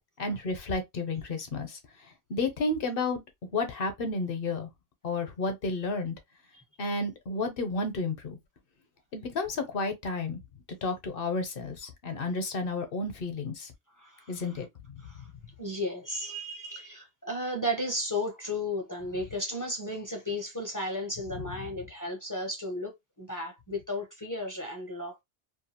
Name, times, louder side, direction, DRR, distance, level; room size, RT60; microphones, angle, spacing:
voice 1, 0.2-1.8 2.3-3.2 3.5-4.7 5.0-6.1 6.8-8.4 9.1-10.4 10.8-13.7 14.3-14.7 21.3-21.4, left 3 dB, 60° left, 0.8 m, -31 dB
voice 2, 14.0-14.5 15.0-15.2 15.6-22.9 23.2-25.2, left 1 dB, 20° left, 0.5 m, -34 dB
2.6 x 2.3 x 2.7 m
omnidirectional pair, 1.1 m